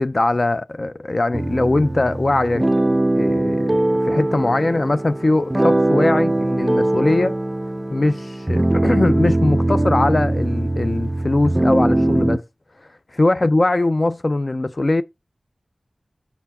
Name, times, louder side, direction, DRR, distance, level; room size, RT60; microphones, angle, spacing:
voice 1, 0.0-2.7 3.2-7.4 7.9-12.4 13.2-15.0, left 2 dB, 45° left, 0.3 m, -21 dB
sound 1, 1.3-12.4, right 1 dB, 20° right, 0.4 m, -21 dB
5.8 x 4.4 x 4.1 m
wide cardioid pair, 75°, 0 cm